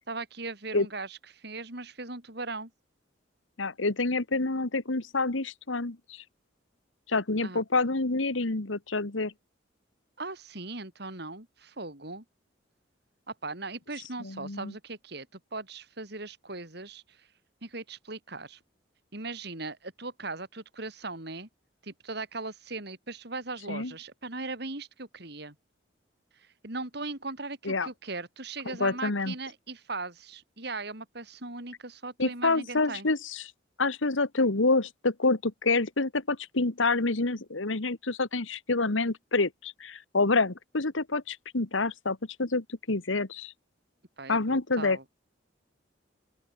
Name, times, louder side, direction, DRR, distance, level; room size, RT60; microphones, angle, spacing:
voice 1, 0.1-2.7 7.4-7.6 10.2-12.2 13.3-17.3 17.6-18.6 19.1-21.5 21.8-25.5 26.3-33.1 44.2-45.0, right 3 dB, 60° right, 3.8 m, -39 dB
voice 2, 3.6-6.2 7.1-9.3 14.2-14.7 23.7-23.9 27.7-27.9 28.7-29.3 32.2-33.4 33.8-43.5 44.3-45.0, left 3 dB, 90° left, 1.7 m, -27 dB
open air
head